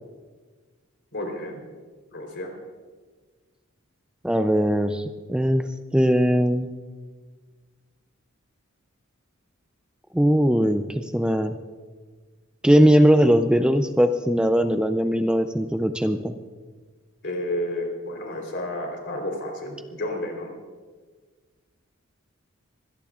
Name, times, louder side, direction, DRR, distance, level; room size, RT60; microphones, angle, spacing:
voice 1, 1.1-1.6 2.1-2.5 17.2-20.5, left 1 dB, 60° left, 2 dB, 3.7 m, -31 dB
voice 2, 4.2-5.0 5.3-5.7 5.9-6.7 10.1-11.5 12.6-16.3, equal, 5° right, 8 dB, 0.4 m, -20 dB
23.5 x 17.0 x 2.5 m, 1.4 s
head